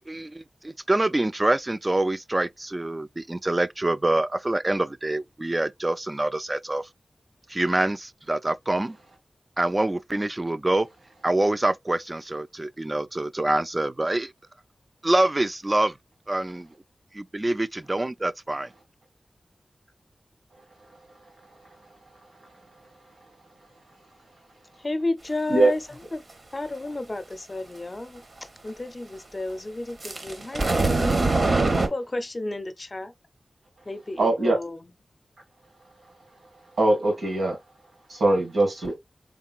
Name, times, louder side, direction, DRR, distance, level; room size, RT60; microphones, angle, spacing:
voice 1, 0.1-6.9 7.5-9.0 9.6-10.9 11.2-14.3 15.0-16.0 16.3-16.7 17.1-18.7, right 2 dB, 30° right, 0.3 m, -25 dB
voice 2, 24.8-25.8 26.1-26.2 26.5-28.2 28.6-31.2 31.8-33.1 33.9-34.9, left 2 dB, 40° left, 0.6 m, -32 dB
sound 1, 30.0-31.9, right 3 dB, 60° right, 0.9 m, -22 dB
voice 3, 34.2-34.6 36.8-37.6 38.1-38.9, right 2 dB, 85° right, 2.0 m, -21 dB
3.7 x 3.6 x 2.4 m
wide cardioid pair, 55°, 0 cm